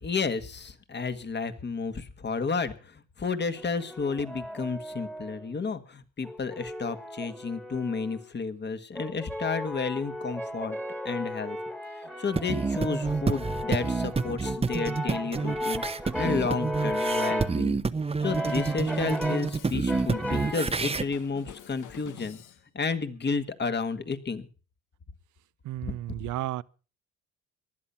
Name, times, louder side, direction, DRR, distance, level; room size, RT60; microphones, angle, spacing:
voice 1, 0.0-10.8 11.0-11.6 12.0-15.8 16.2-17.8 18.2-22.4 22.7-24.5 25.9-26.0, left 4 dB, 35° left, 1.7 m, -31 dB
Brass instrument, 3.5-5.5 6.2-8.3 9.0-17.6 18.2-19.6 19.9-20.7, equal, 5° left, 1.7 m, -35 dB
sound 1, 12.3-21.0, right 4 dB, 20° right, 0.8 m, -29 dB
Drum kit, 18.5-22.6, left 10 dB, 80° left, 1.4 m, -48 dB
voice 2, 25.6-26.6, right 15 dB, 80° right, 0.7 m, -33 dB
19.0 x 11.5 x 5.7 m
cardioid pair, 90°, 30 cm